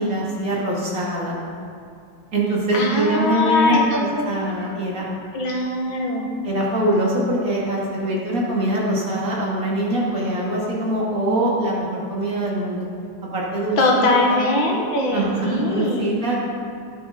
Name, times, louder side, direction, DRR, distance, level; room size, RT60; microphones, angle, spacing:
voice 1, 0.0-1.4 2.3-5.0 6.4-12.9 13.3-14.4 15.1-16.4, right 1 dB, 45° right, -5 dB, 2.7 m, -23 dB
voice 2, 2.7-4.3 5.3-6.3 13.8-16.2, left 2 dB, 85° left, -1 dB, 2.3 m, -21 dB
17.0 x 7.9 x 3.9 m, 2.4 s
omnidirectional pair, 2.1 m